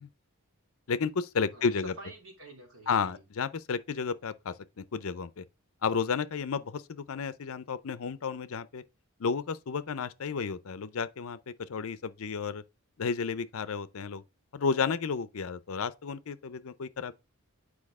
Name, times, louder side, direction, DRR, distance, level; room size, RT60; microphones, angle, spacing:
voice 1, 0.9-1.9 2.9-5.4 5.8-8.8 9.2-12.6 13.0-14.2 14.5-17.1, left 5 dB, 65° left, 0.5 m, -32 dB
voice 2, 1.5-3.2, right 2 dB, 70° right, 2.7 m, -48 dB
8.7 x 4.8 x 3.5 m
head